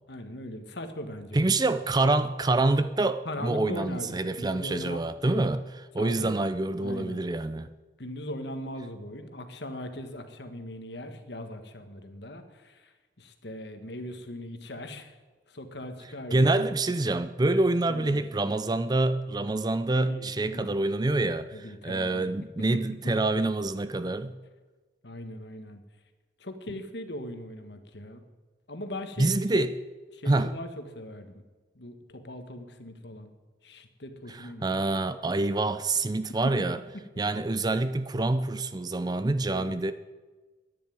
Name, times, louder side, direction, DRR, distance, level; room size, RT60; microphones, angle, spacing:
voice 1, 0.1-1.5 3.2-5.5 6.0-6.3 6.8-7.2 8.0-15.1 15.5-16.5 17.9-18.5 19.9-20.8 21.5-22.9 25.0-25.8 26.4-28.2 28.7-29.7 30.1-31.4 31.7-33.3 33.6-34.8 36.6-36.7 39.5-39.8, left 1 dB, 60° left, 1.5 m, -40 dB
voice 2, 1.3-5.6 5.9-7.7 16.3-24.3 29.2-29.7 30.3-30.5 34.4-36.8 37.2-39.9, right 2 dB, 20° right, 0.4 m, -26 dB
10.5 x 10.0 x 9.3 m
head